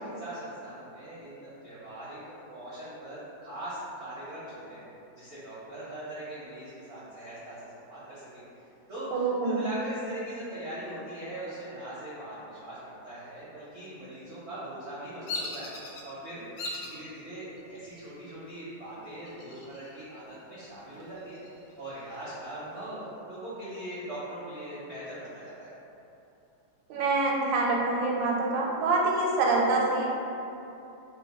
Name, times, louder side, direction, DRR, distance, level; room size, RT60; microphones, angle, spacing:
voice 1, 0.2-4.8 5.2-8.4 8.9-9.1 9.4-15.7 16.0-21.4 21.8-25.7, right 1 dB, 60° right, -10 dB, 0.7 m, -41 dB
voice 2, 9.1-9.6 26.9-30.1, right 3 dB, 80° right, -2 dB, 1.3 m, -26 dB
Bird vocalization bird call bird song, 15.3-16.0 16.6-17.0 17.6-18.1 19.3-20.0 20.4-20.5 20.9-22.3, left 2 dB, 70° left, 1.1 m, -38 dB
3.0 x 2.2 x 4.0 m, 2.8 s
omnidirectional pair, 2.0 m